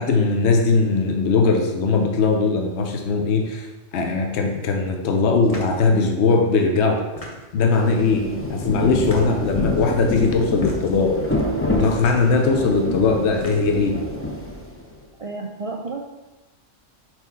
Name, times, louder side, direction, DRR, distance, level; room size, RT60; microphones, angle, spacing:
voice 1, 0.0-3.7 3.9-7.0 7.5-8.2 8.5-11.2 11.7-14.0, left 4 dB, 65° left, 3 dB, 1.0 m, -20 dB
sound 1, 5.4-5.8 7.0-7.7 8.9-9.5 10.5-11.0 11.9-12.3 13.2-13.9, left 1 dB, 30° left, 0.9 m, -38 dB
Rain, 7.7-15.0, left 1 dB, 15° left, 0.5 m, -27 dB
voice 2, 15.2-16.0, right 3 dB, 65° right, 0 dB, 0.3 m, -33 dB
4.4 x 4.3 x 5.6 m, 1.1 s
omnidirectional pair, 1.3 m